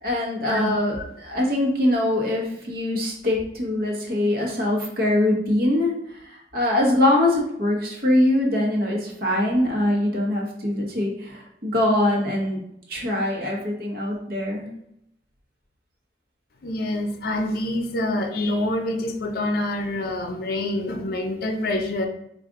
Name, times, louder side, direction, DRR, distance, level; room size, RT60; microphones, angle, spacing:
voice 1, 0.0-5.9 6.2-12.6 12.9-14.7, left 1 dB, 55° right, -1 dB, 1.1 m, -23 dB
voice 2, 16.6-22.1, left 1 dB, 55° left, 4 dB, 0.6 m, -26 dB
4.9 x 2.5 x 3.7 m, 0.77 s
head